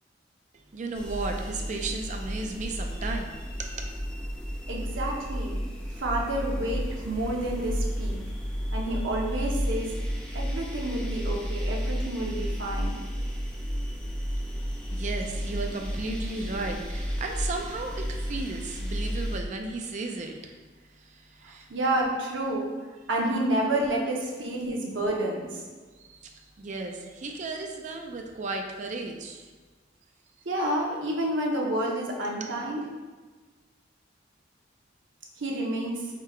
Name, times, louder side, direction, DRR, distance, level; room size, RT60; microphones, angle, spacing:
voice 1, 0.5-3.7 14.9-20.6 20.8-21.7 26.0-29.5, right 3 dB, 40° right, 3 dB, 0.5 m, -35 dB
sound 1, 0.9-19.4, equal, 5° left, 0.6 m, -32 dB
voice 2, 4.7-5.6 5.9-8.2 8.7-10.0 10.3-12.9 21.4-22.7 23.1-25.6 30.4-32.8 35.4-36.1, right 1 dB, 85° right, -1 dB, 0.8 m, -29 dB
3.7 x 2.8 x 4.5 m, 1.4 s
head